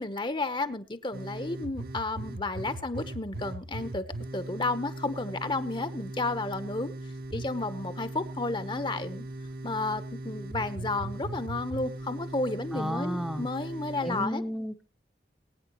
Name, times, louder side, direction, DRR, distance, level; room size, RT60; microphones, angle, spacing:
voice 1, 0.0-4.0 4.3-6.9 7.3-9.3 9.6-14.4, left 2 dB, 25° left, 12 dB, 1.1 m, -32 dB
sound 1, 1.1-14.3, right 1 dB, 60° right, 1.3 m, -39 dB
voice 2, 12.7-13.5 14.0-14.8, equal, 5° right, 5 dB, 0.9 m, -32 dB
22.0 x 9.5 x 3.1 m, 0.31 s
head